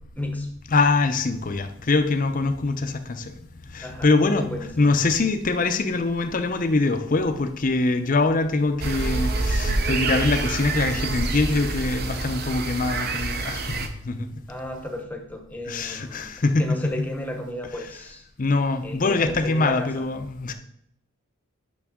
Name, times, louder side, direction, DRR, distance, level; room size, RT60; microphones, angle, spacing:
voice 1, 0.2-0.5 3.8-4.9 14.5-16.3 16.6-18.2 18.8-20.0, left 1 dB, 5° left, 4 dB, 0.8 m, -33 dB
voice 2, 0.7-3.3 3.7-4.5 4.8-14.3 15.7-16.7 18.4-20.5, left 3 dB, 35° left, 8 dB, 0.6 m, -23 dB
sound 1, 8.8-13.9, right 3 dB, 45° right, 0.7 m, -27 dB
8.5 x 6.0 x 3.6 m, 0.73 s
head